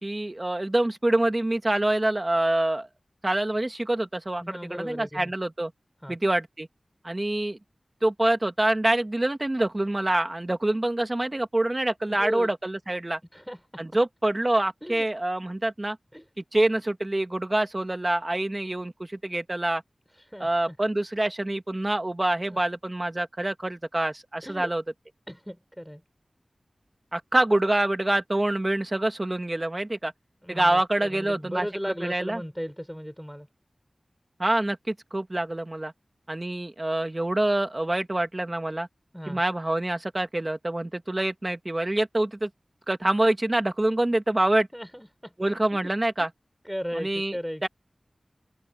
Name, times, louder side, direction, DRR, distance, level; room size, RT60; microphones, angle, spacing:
voice 1, 0.0-2.9 3.2-5.7 6.1-6.7 7.0-7.6 8.0-13.2 13.8-16.0 16.5-19.8 20.4-24.8 27.1-30.1 30.5-31.7 32.0-32.4 34.4-35.9 36.3-38.9 39.3-42.5 42.9-44.7 45.4-46.3 46.9-47.4 47.6-47.7, right 1 dB, 30° right, 1.6 m, -26 dB
voice 2, 4.4-5.3 6.0-6.2 12.1-12.5 13.3-13.8 14.8-15.1 16.1-16.2 20.1-20.8 22.4-22.6 24.4-24.7 25.3-26.0 30.4-33.5 39.1-39.4 44.7-45.3 46.6-47.7, equal, ahead, 6.5 m, -36 dB
wide cardioid pair, 75°, 0 cm